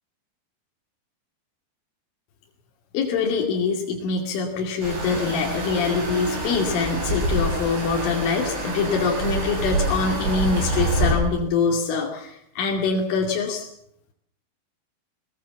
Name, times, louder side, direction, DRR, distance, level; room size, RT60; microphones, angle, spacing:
voice 1, 2.9-13.7, left 4 dB, 80° left, 0 dB, 5.1 m, -24 dB
sound 1, 4.8-11.2, right 1 dB, 65° right, 8.6 m, -26 dB
21.5 x 21.0 x 7.2 m, 0.72 s
omnidirectional pair, 5.5 m